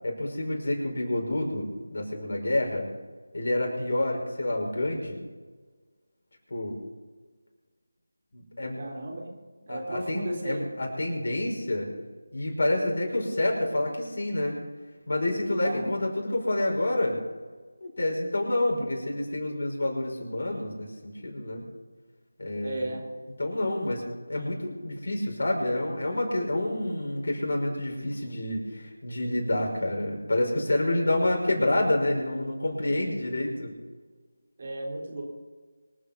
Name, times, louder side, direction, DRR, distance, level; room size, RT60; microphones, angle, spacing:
voice 1, 0.0-2.9 3.3-5.2 6.5-6.8 8.3-8.8 9.7-11.9 12.3-14.6 15.1-17.2 17.8-21.7 22.4-22.9 23.4-33.7, left 1 dB, 60° left, 0 dB, 5.9 m, -28 dB
voice 2, 8.8-9.2 9.6-10.6 15.6-16.0 22.6-23.1 34.6-35.2, right 1 dB, 40° right, 0 dB, 3.6 m, -34 dB
25.5 x 8.6 x 5.4 m, 1.4 s
figure-of-eight pair, 165°, 0 cm